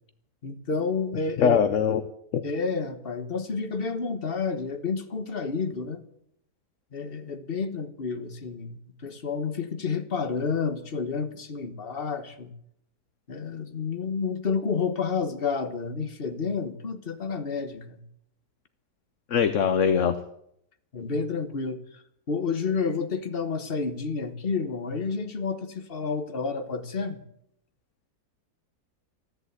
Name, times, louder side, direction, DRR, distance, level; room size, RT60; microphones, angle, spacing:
voice 1, 0.4-1.6 2.4-6.0 6.9-12.5 13.3-18.0 20.9-27.2, left 5 dB, 35° left, 8 dB, 1.5 m, -30 dB
voice 2, 1.4-2.0 2.3-2.4 19.3-20.1, left 7 dB, 55° left, 10 dB, 1.0 m, -21 dB
13.5 x 11.5 x 8.2 m, 0.72 s
omnidirectional pair, 1.8 m